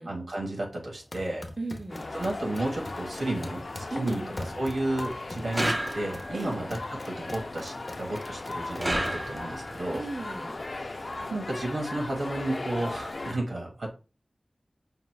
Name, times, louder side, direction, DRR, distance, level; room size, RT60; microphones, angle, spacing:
voice 1, 0.1-1.4 2.1-4.2 4.5-6.8 7.0-10.0 10.8-13.9, right 1 dB, 85° right, -1 dB, 1.5 m, -32 dB
sound 1, 1.0-9.4, left 1 dB, 45° left, 0.8 m, -42 dB
voice 2, 1.6-2.1 3.9-4.5 6.3-6.7 9.9-10.6, right 2 dB, 45° right, 2 dB, 0.9 m, -36 dB
sound 2, 1.9-13.3, left 2 dB, 60° left, 0.4 m, -38 dB
sound 3, 5.5-6.4 8.8-9.7, right 1 dB, 25° right, 0.5 m, -30 dB
5.4 x 3.2 x 2.4 m, 0.32 s
wide cardioid pair, 70°, 0 cm